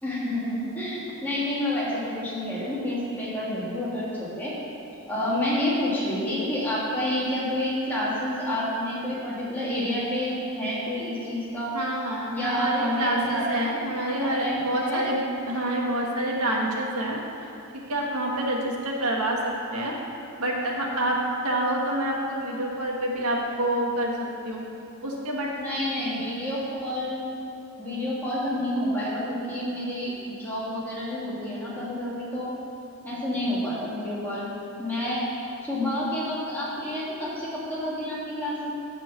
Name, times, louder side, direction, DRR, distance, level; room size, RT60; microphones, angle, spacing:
voice 1, 0.0-4.5 5.1-11.7 12.3-13.9 14.2-14.6 14.9-15.0 25.5-27.3 27.8-32.5 33.0-34.5 34.8-35.2 35.6-38.7, left 1 dB, 10° left, -8 dB, 2.2 m, -29 dB
voice 2, 11.7-15.2 15.5-17.2 17.7-20.0 20.4-21.2 21.4-24.1 24.4-24.7 25.0-25.5, right 1 dB, 80° right, -1 dB, 1.4 m, -27 dB
12.0 x 4.4 x 6.8 m, 2.7 s
head